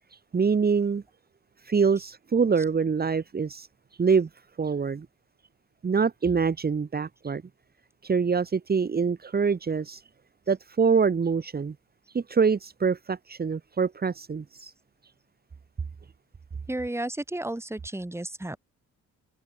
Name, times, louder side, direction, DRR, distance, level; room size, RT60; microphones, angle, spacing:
voice 1, 0.1-1.0 1.6-3.7 4.0-4.3 4.6-5.1 5.8-7.4 8.0-10.0 10.5-11.8 12.1-14.7, right 5 dB, 30° right, 1.9 m, -25 dB
voice 2, 16.7-18.6, right 1 dB, 10° right, 3.8 m, -32 dB
cardioid pair, 90°, 30 cm